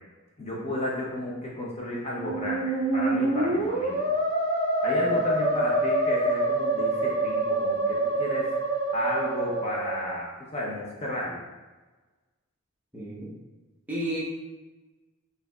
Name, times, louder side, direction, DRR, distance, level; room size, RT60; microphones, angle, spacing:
voice 1, 0.4-4.0 4.8-8.5 8.9-11.4, left 1 dB, 30° left, -4 dB, 0.7 m, -32 dB
Musical instrument, 2.1-10.2, right 2 dB, 50° right, 1.5 m, -26 dB
voice 2, 12.9-13.3 13.9-14.2, right 1 dB, 10° right, -7 dB, 0.8 m, -32 dB
4.5 x 4.0 x 2.3 m, 1.2 s
head